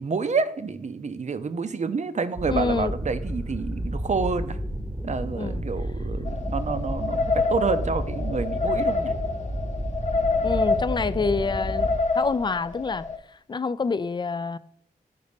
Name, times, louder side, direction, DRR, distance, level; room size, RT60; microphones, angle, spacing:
voice 1, 0.0-4.6 5.0-9.1, right 4 dB, 45° right, 0.6 m, -28 dB
sound 1, 2.4-12.0, right 1 dB, 5° right, 0.9 m, -31 dB
voice 2, 2.5-2.9 5.2-5.6 10.4-11.9 12.2-13.1 13.5-14.6, left 4 dB, 25° left, 0.3 m, -27 dB
sound 2, 6.3-13.2, left 4 dB, 45° left, 0.7 m, -27 dB
5.3 x 3.9 x 5.2 m
supercardioid pair, 40°, 17 cm